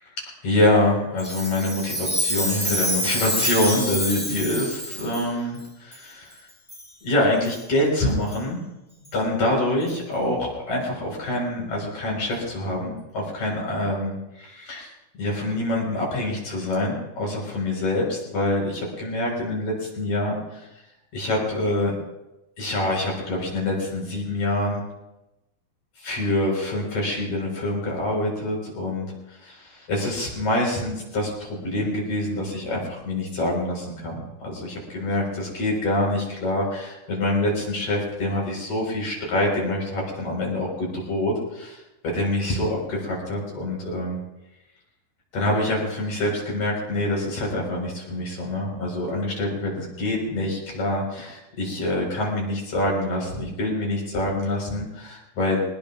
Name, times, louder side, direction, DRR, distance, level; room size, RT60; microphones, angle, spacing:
voice 1, 0.4-6.3 7.0-8.6 9.1-14.9 15.2-20.7 21.1-22.0 22.6-24.8 26.0-41.8 42.1-44.2 45.3-55.6, left 1 dB, 55° left, -1 dB, 6.0 m, -26 dB
Chime, 1.2-5.3 5.9-6.0 6.7-6.9 7.4-7.6 8.3-8.4 9.0-9.1 9.9-10.0, equal, 15° left, 0.3 m, -27 dB
22.0 x 19.5 x 2.5 m, 0.95 s
omnidirectional pair, 4.1 m